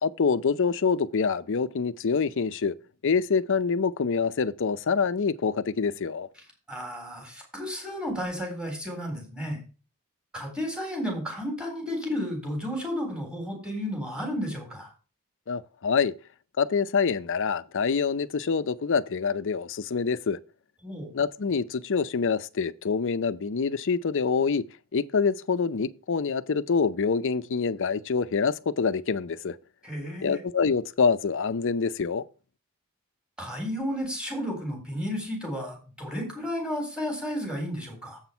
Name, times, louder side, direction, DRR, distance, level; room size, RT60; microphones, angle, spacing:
voice 1, 0.0-2.7 3.0-6.3 15.5-16.1 16.6-20.4 21.1-24.6 24.9-29.6 30.2-32.2, left 5 dB, 60° left, 0.6 m, -26 dB
voice 2, 6.7-9.6 10.3-14.9 20.8-21.1 29.8-30.4 33.4-38.2, equal, 5° right, 3.8 m, -32 dB
8.0 x 6.1 x 5.6 m
head